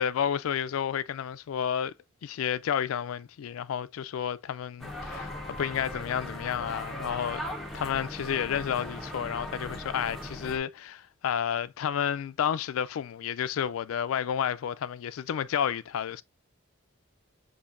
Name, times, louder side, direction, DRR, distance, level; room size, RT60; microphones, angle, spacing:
voice 1, 0.0-1.9 2.2-7.4 7.7-16.2, left 8 dB, 80° left, 0.3 m, -31 dB
sound 1, 4.8-10.6, left 1 dB, ahead, 0.7 m, -38 dB
6.8 x 2.7 x 2.5 m
head